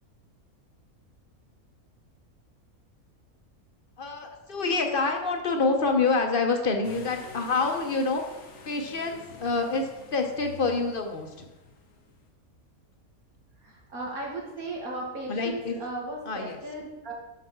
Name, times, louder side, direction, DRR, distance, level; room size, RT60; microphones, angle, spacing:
voice 1, 4.0-8.2 8.6-11.5 15.3-15.8 16.3-16.6, left 4 dB, 45° left, 4 dB, 0.9 m, -27 dB
sound 1, 6.8-12.3, left 4 dB, 80° left, 1.5 m, -47 dB
voice 2, 13.6-17.1, right 2 dB, 80° right, -2 dB, 2.4 m, -36 dB
6.0 x 5.9 x 5.8 m, 1.1 s
omnidirectional pair, 1.5 m